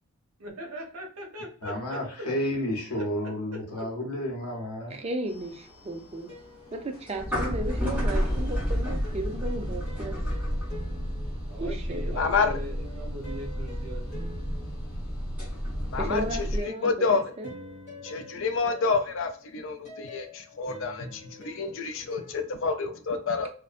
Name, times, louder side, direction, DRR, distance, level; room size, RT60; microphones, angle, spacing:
voice 1, 0.4-2.3 3.0-3.9 11.5-14.4, right 1 dB, 85° right, 0.7 m, -41 dB
voice 2, 1.6-5.0, left 1 dB, 80° left, 0.8 m, -31 dB
sound 1, 4.4-5.5 6.3-8.1 9.0-15.7 16.6-22.6, left 2 dB, 30° left, 1.0 m, -47 dB
voice 3, 4.9-6.3 6.7-10.2 11.6-12.2 16.0-17.5, right 1 dB, 30° right, 0.4 m, -34 dB
sound 2, 5.3-16.6, equal, 5° right, 1.1 m, -31 dB
voice 4, 12.1-12.5 15.9-16.5 16.8-17.3 18.0-23.5, left 4 dB, 60° left, 0.4 m, -28 dB
2.6 x 2.1 x 2.4 m
head